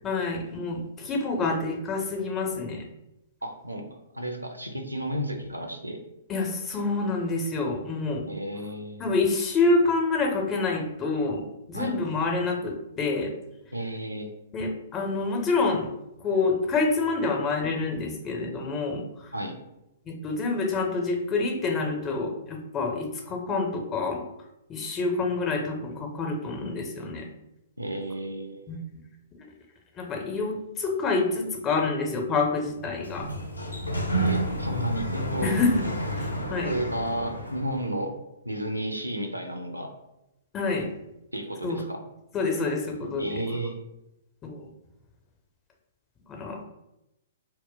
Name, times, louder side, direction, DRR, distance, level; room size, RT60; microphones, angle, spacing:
voice 1, 0.0-2.8 6.3-8.2 9.0-11.4 11.7-13.3 14.5-15.9 16.2-19.3 20.1-24.2 24.7-27.3 28.7-28.8 30.0-33.3 35.4-35.8 36.1-36.8 40.5-40.9 41.6-41.8 42.3-43.4 44.4-44.7 46.3-46.6, left 3 dB, 20° left, 1 dB, 0.5 m, -27 dB
voice 2, 3.4-3.9 4.1-6.0 8.3-9.1 11.7-11.9 13.7-14.3 19.3-19.6 27.8-28.8 34.2-35.5 36.7-38.1 38.4-39.9 41.3-42.0 43.2-43.8, right 1 dB, 85° right, 4 dB, 0.4 m, -32 dB
Sliding door, 32.7-37.9, right 1 dB, 85° left, 0.5 m, -30 dB
2.1 x 2.1 x 3.6 m, 0.89 s
figure-of-eight pair, 115°, 0 cm